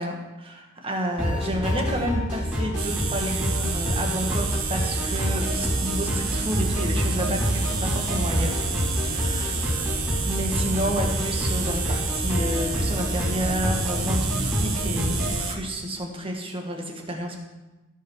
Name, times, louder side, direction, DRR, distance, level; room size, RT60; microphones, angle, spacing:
voice 1, 0.0-8.6 9.0-9.6 10.2-17.4, equal, 25° right, 2 dB, 1.6 m, -30 dB
sound 1, 1.2-15.4, equal, 5° right, 4.4 m, -27 dB
sound 2, 2.8-15.5, right 4 dB, 85° right, 1.4 m, -29 dB
16.5 x 5.6 x 4.7 m, 1.1 s
head